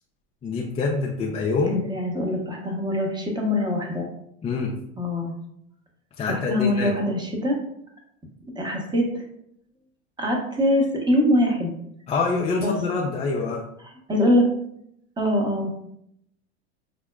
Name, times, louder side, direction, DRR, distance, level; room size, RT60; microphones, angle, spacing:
voice 1, 0.4-1.8 4.4-4.7 6.2-6.9 12.1-13.6, left 4 dB, 15° left, -3 dB, 0.4 m, -25 dB
voice 2, 1.7-4.1 5.0-5.4 6.3-7.6 8.5-9.1 10.2-11.7 12.6-12.7 14.1-14.5 15.2-15.7, left 1 dB, 10° right, 0 dB, 0.9 m, -23 dB
5.7 x 2.1 x 2.3 m, 0.74 s
hypercardioid pair, 95°, 38 cm